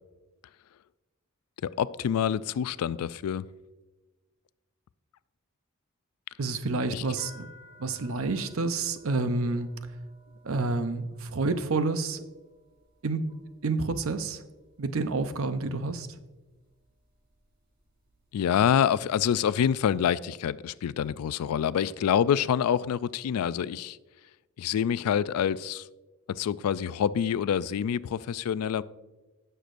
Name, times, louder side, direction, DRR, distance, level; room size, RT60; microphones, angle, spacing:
voice 1, 1.6-3.4 6.9-7.0 18.3-24.0 24.6-25.9 26.3-28.8, left 8 dB, 85° left, 0.3 m, -26 dB
voice 2, 6.4-7.5 7.8-9.7 10.4-12.2 13.0-13.2 13.6-14.4 14.8-16.1, right 3 dB, 65° right, 0.7 m, -29 dB
sound 1, 7.2-15.0 15.3-16.0 16.6-16.9 17.1-18.6, left 1 dB, 45° right, 2.8 m, -58 dB
16.5 x 6.7 x 2.5 m
head